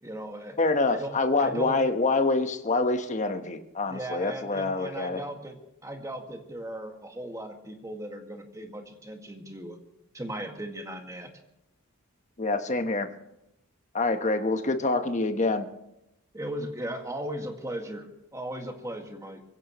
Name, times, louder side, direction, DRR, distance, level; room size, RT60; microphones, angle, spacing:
voice 1, 0.0-0.6 0.9-1.8 3.9-9.8 10.1-11.3 16.3-19.4, right 1 dB, 15° right, 3 dB, 1.9 m, -37 dB
voice 2, 0.6-5.2 12.4-13.1 13.9-15.7, left 3 dB, 35° left, 7 dB, 1.2 m, -26 dB
24.0 x 16.0 x 3.1 m, 0.87 s
head